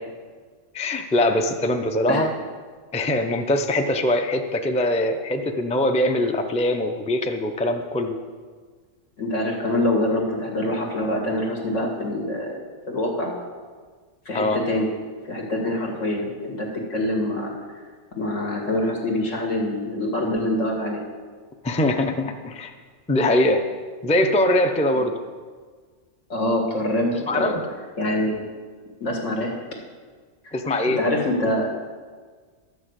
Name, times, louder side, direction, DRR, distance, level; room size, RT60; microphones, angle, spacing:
voice 1, 0.7-2.3 2.9-8.1 14.3-14.6 21.6-22.7 23.1-23.6 24.0-25.1 27.3-27.7 30.5-31.0, left 1 dB, 10° left, 5 dB, 0.4 m, -22 dB
voice 2, 9.2-12.6 12.9-13.4 14.3-15.0 15.2-17.5 18.2-21.0 26.3-27.6 28.0-28.5 29.0-29.6 30.4-30.6 30.9-31.7, left 1 dB, 75° left, 0 dB, 2.3 m, -25 dB
12.0 x 6.3 x 8.1 m, 1.5 s
omnidirectional pair, 1.3 m